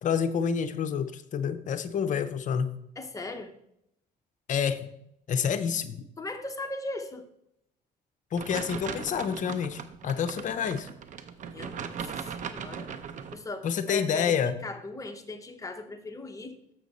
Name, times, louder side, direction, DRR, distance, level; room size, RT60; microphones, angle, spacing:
voice 1, 0.0-2.7 4.5-4.9 5.3-6.1 8.3-10.9 13.6-14.6, left 7 dB, 50° left, 11 dB, 0.6 m, -28 dB
voice 2, 3.0-3.5 6.2-7.3 11.5-12.9 13.3-16.5, left 2 dB, 20° left, 6 dB, 0.8 m, -38 dB
sound 1, 8.4-13.4, right 7 dB, 50° right, 0.6 m, -38 dB
7.1 x 6.2 x 4.1 m, 0.77 s
cardioid pair, 110°, 17 cm